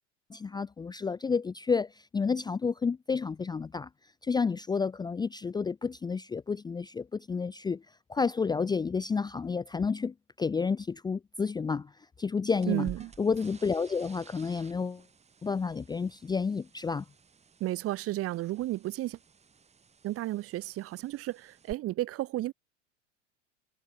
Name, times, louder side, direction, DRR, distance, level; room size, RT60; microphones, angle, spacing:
voice 1, 0.3-3.9 4.2-7.8 8.1-11.9 12.2-12.9 13.2-15.0 15.4-17.0, left 5 dB, 10° left, 0.6 m, -30 dB
sound 1, 12.5-21.7, right 6 dB, 15° right, 1.8 m, -53 dB
voice 2, 12.7-13.1 17.6-19.2 20.0-22.5, right 16 dB, 40° right, 1.5 m, -32 dB
figure-of-eight pair, 85°, 37 cm